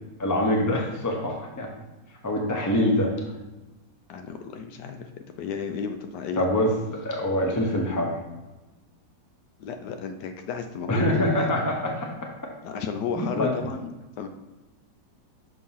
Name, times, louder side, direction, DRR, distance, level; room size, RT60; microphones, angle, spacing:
voice 1, 0.2-1.7 2.2-3.4 6.4-8.1 10.9-12.1 13.2-13.5, left 1 dB, 30° left, 0 dB, 0.3 m, -25 dB
voice 2, 4.1-6.5 9.6-11.5 12.6-14.3, left 6 dB, 75° left, 6 dB, 1.1 m, -33 dB
6.2 x 3.0 x 5.5 m, 1.1 s
omnidirectional pair, 2.0 m